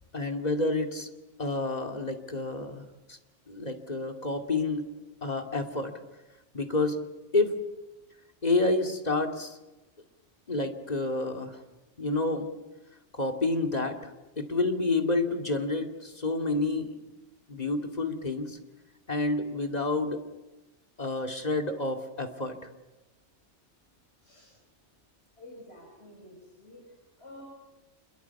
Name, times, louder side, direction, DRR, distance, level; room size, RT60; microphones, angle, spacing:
voice 1, 0.1-1.1 1.4-3.2 3.5-4.9 5.2-5.9 6.5-7.0 7.3-7.6 8.4-9.6 10.5-11.6 12.0-12.6 13.1-16.9 17.5-18.6 19.1-20.2 21.0-22.7, left 2 dB, 35° left, 4 dB, 2.6 m, -29 dB
voice 2, 25.4-26.8 27.2-27.4, left 1 dB, 60° left, -1 dB, 6.8 m, -49 dB
27.5 x 22.5 x 7.2 m, 1.1 s
omnidirectional pair, 1.2 m